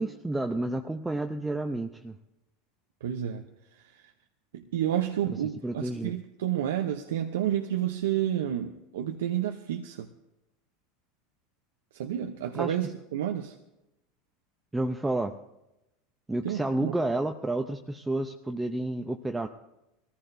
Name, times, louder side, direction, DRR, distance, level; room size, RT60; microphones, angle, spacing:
voice 1, 0.0-2.2 5.6-6.1 12.5-12.8 14.7-15.3 16.3-19.5, right 2 dB, 10° right, 5 dB, 0.6 m, -30 dB
voice 2, 3.0-3.4 3.8-4.1 4.5-10.1 11.9-13.5 16.4-16.9, right 11 dB, 90° right, 5 dB, 0.7 m, -30 dB
21.0 x 14.5 x 2.7 m, 0.92 s
supercardioid pair, 110°, 0 cm